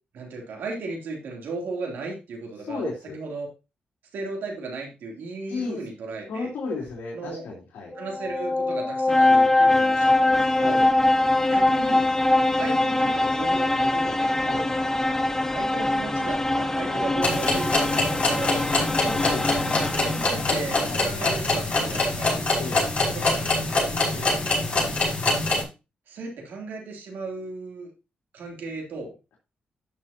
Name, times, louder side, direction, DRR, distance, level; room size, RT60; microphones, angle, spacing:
voice 1, 0.1-3.5 4.1-6.5 7.1-7.4 7.9-10.8 11.5-12.1 12.6-14.8 15.5-19.0 19.9-22.3 23.1-23.5 23.9-24.4 26.1-27.9 28.3-29.1, right 3 dB, 80° right, 1 dB, 3.1 m, -36 dB
voice 2, 2.6-3.2 5.5-5.8 6.3-7.9 10.6-10.9 14.4-14.6 16.9-17.1 19.0-20.0 20.9-21.0 22.6-22.8, left 3 dB, 90° left, -2 dB, 2.9 m, -33 dB
sound 1, 7.9-20.7, left 2 dB, 15° left, 0.8 m, -23 dB
sound 2, 17.2-25.6, left 2 dB, 40° left, 5.9 m, -24 dB
11.5 x 6.6 x 2.9 m, 0.28 s
cardioid pair, 95°, 3 cm